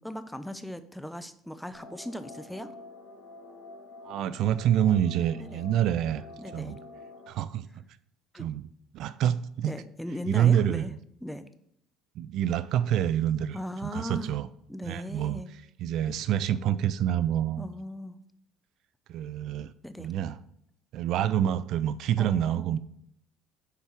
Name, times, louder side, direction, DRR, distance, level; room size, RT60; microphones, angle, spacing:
voice 1, 0.0-2.7 5.4-5.6 6.4-6.7 8.3-8.5 9.6-10.9 11.2-11.5 13.5-14.3 14.7-15.5 17.6-18.2 19.8-20.1 22.2-22.8, equal, 5° left, 11 dB, 0.7 m, -38 dB
sound 1, 1.7-7.3, left 2 dB, 65° left, 2.9 m, -47 dB
voice 2, 4.0-6.3 6.5-6.8 7.3-7.8 8.4-8.7 8.9-9.7 10.3-11.0 12.2-14.5 14.9-15.4 15.8-17.7 19.1-19.7 20.0-20.4 20.9-22.8, right 10 dB, 65° right, 15 dB, 0.3 m, -27 dB
6.8 x 4.5 x 4.5 m, 0.72 s
hypercardioid pair, 70°, 0 cm